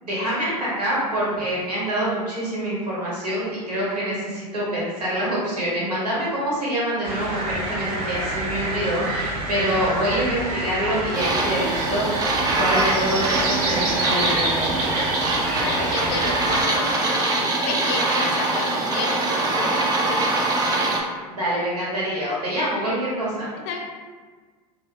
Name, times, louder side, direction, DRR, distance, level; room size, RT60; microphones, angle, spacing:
voice 1, 0.1-12.3 12.6-15.1 21.4-23.5, equal, 85° right, -6 dB, 1.0 m, -26 dB
sound 1, 7.0-16.6, right 2 dB, 60° right, 0.7 m, -28 dB
sound 2, 11.1-21.0, right 2 dB, 20° right, 0.4 m, -23 dB
voice 2, 15.6-20.4 23.7-23.8, left 4 dB, 50° left, 1 dB, 0.5 m, -31 dB
2.5 x 2.4 x 2.2 m, 1.4 s
hypercardioid pair, 80°, 20 cm